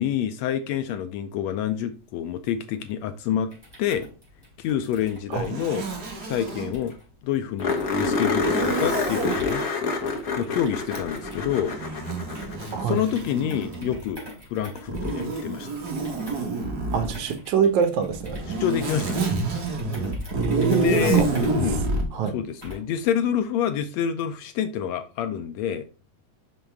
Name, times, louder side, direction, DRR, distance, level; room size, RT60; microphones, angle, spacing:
voice 1, 0.0-3.5 3.8-4.1 4.6-5.8 6.2-6.9 7.2-9.6 10.4-11.7 12.6-14.2 14.5-15.7 18.6-19.3 20.6-21.3 21.5-21.8 22.3-25.9, left 9 dB, 75° left, 1.7 m, -27 dB
sound 1, 3.5-23.0, equal, 5° right, 3.6 m, -47 dB
Zipper (clothing), 5.3-6.7 8.4-9.5 10.9-14.1 14.9-17.2 18.1-22.1, right 3 dB, 40° right, 1.7 m, -28 dB
sound 2, 6.2-6.3 6.5-6.6 6.9-7.0 7.6-13.0 15.4-15.5 18.3-18.4, left 4 dB, 50° left, 1.1 m, -27 dB
voice 2, 16.9-18.4 20.3-21.3 22.1-22.4, right 7 dB, 75° right, 2.3 m, -24 dB
6.1 x 5.7 x 3.4 m
omnidirectional pair, 3.4 m